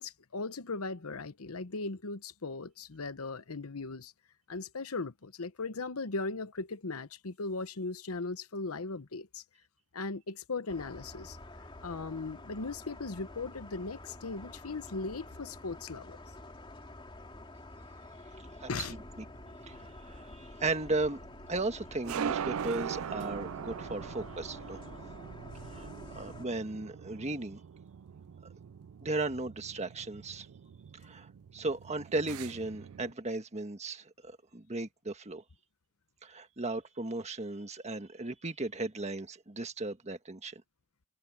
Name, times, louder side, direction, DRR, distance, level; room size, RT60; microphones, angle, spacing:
voice 1, 0.0-4.1 4.5-9.4 9.9-11.4 11.8-16.2 18.7-19.0, left 3 dB, 80° left, 1.0 m, -38 dB
sound 1, 10.7-26.5, left 1 dB, 25° left, 2.5 m, -49 dB
sound 2, 19.1-33.1, right 8 dB, 70° right, 0.4 m, -42 dB
voice 2, 19.7-21.2 21.5-24.8 25.6-27.6 29.0-30.5 31.0-35.4 36.2-40.5, right 2 dB, 30° right, 1.5 m, -36 dB
head